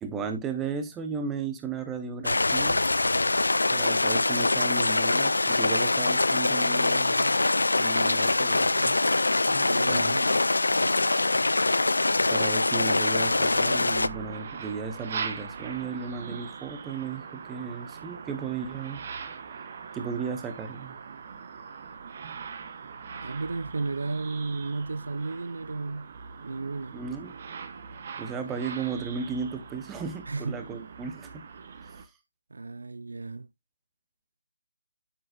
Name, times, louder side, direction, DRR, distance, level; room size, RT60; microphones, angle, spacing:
voice 1, 0.0-2.8 3.7-7.3 7.8-9.0 9.5-10.2 12.3-19.0 19.5-19.6 19.9-21.0 26.9-27.4 28.2-31.4 31.9-32.1, right 5 dB, 10° right, 0.8 m, -35 dB
sound 1, 2.2-14.1, left 2 dB, 80° left, 0.3 m, -24 dB
voice 2, 9.7-10.4 23.1-26.1 26.4-27.0 30.3-30.6 32.5-33.5, right 3 dB, 70° right, 0.4 m, -33 dB
sound 2, 13.1-32.0, right 5 dB, 40° right, 0.9 m, -41 dB
8.7 x 6.5 x 2.3 m
figure-of-eight pair, 155°, 0 cm